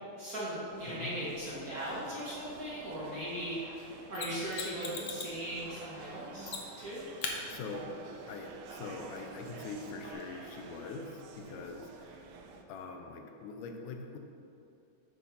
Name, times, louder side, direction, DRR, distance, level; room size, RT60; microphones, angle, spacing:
voice 1, 0.2-3.6 4.1-7.0, equal, 35° right, -10 dB, 1.8 m, -38 dB
sound 1, 0.7-12.6, right 4 dB, 80° right, 1.6 m, -49 dB
Mechanisms, 4.1-5.4 6.4-6.9 7.2-7.4 10.1-10.2, left 5 dB, 70° left, 1.5 m, -39 dB
voice 2, 7.5-7.9 8.3-12.2 12.7-14.2, left 4 dB, 90° left, 4 dB, 2.3 m, -43 dB
9.0 x 4.3 x 5.4 m, 2.6 s
omnidirectional pair, 3.5 m